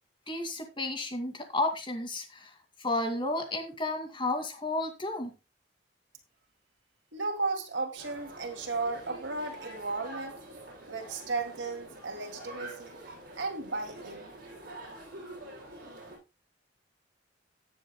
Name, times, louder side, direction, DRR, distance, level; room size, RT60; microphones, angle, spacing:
voice 1, 0.3-2.5 2.8-5.3, left 2 dB, 25° left, 2.2 m, -32 dB
voice 2, 7.1-10.3 10.9-13.0 13.4-14.3, right 3 dB, 90° right, 2.4 m, -34 dB
sound 1, 8.0-16.2, right 1 dB, 55° right, 7.0 m, -46 dB
17.0 x 7.5 x 2.2 m
head